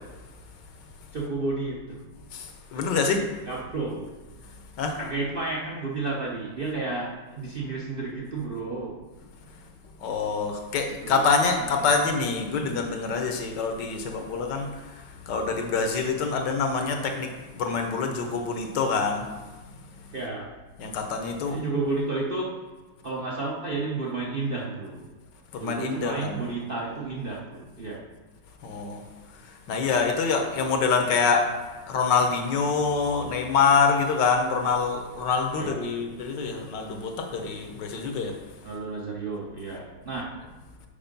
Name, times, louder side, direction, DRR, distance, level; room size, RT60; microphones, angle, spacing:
voice 1, 1.1-2.0 2.7-3.0 3.4-4.1 4.9-9.0 10.9-11.3 11.7-12.0 12.5-12.7 20.1-20.6 21.4-22.6 23.0-25.0 25.6-28.0 35.6-36.0 36.6-36.7 38.6-40.4, right 3 dB, 45° right, -3 dB, 0.7 m, -32 dB
voice 2, 2.3-3.2 4.8-5.0 10.0-19.3 19.7-19.8 20.8-21.6 25.5-26.4 28.6-29.0 29.3-31.5 31.9-38.4, left 5 dB, 70° left, 4 dB, 1.5 m, -26 dB
7.1 x 4.9 x 5.2 m, 1.2 s
omnidirectional pair, 2.0 m